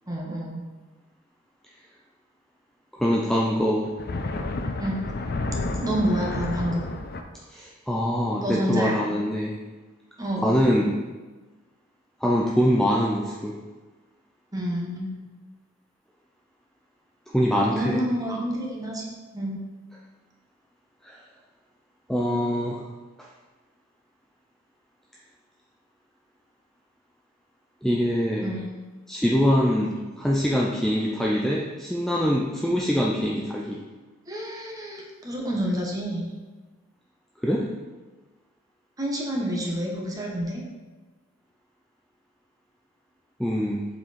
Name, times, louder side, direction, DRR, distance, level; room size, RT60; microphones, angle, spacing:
voice 1, 0.1-0.7 4.8-5.1 5.8-6.9 8.4-9.0 10.2-10.6 14.5-15.2 17.7-19.0 19.3-19.6 28.4-28.6 34.3-36.3 39.0-40.6, equal, 15° right, -1 dB, 1.3 m, -28 dB
voice 2, 2.9-3.9 7.5-9.6 10.4-11.0 12.2-13.6 17.3-18.0 21.0-21.2 22.1-22.8 27.8-28.6 29.1-33.8 37.4-37.7 43.4-43.9, equal, ahead, -3 dB, 0.5 m, -24 dB
sound 1, 3.9-7.2, left 2 dB, 50° left, 0.6 m, -30 dB
7.6 x 4.7 x 4.2 m, 1.3 s
head